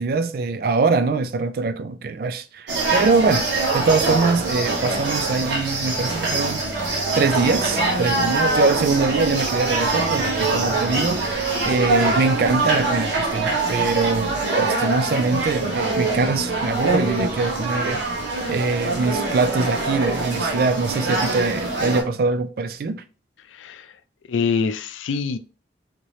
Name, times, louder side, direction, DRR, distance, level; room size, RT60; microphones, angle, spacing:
voice 1, 0.0-6.6 7.2-18.0 18.5-23.0, right 4 dB, 50° right, 0.3 m, -23 dB
sound 1, 2.7-22.0, right 3 dB, 75° right, 1.1 m, -23 dB
voice 2, 23.5-23.9 24.3-25.4, left 5 dB, 85° left, 0.4 m, -24 dB
3.1 x 2.9 x 2.6 m
head